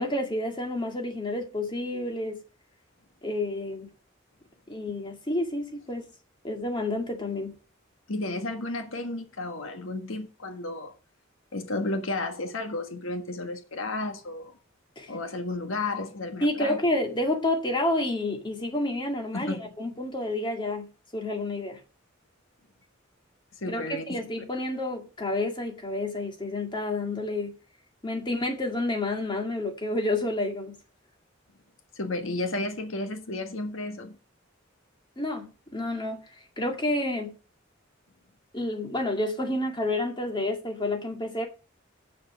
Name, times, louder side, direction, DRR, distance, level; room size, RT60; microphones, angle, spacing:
voice 1, 0.0-2.4 3.2-3.9 4.7-6.0 6.4-7.5 15.0-15.2 16.4-21.8 23.7-27.5 28.0-30.8 35.2-36.3 36.6-37.3 38.5-41.5, left 1 dB, 25° left, 2.2 m, -29 dB
voice 2, 8.1-10.9 11.5-14.6 15.1-16.8 19.3-19.7 23.6-24.2 31.9-34.2, left 2 dB, 80° left, 1.4 m, -32 dB
8.2 x 6.9 x 6.3 m
head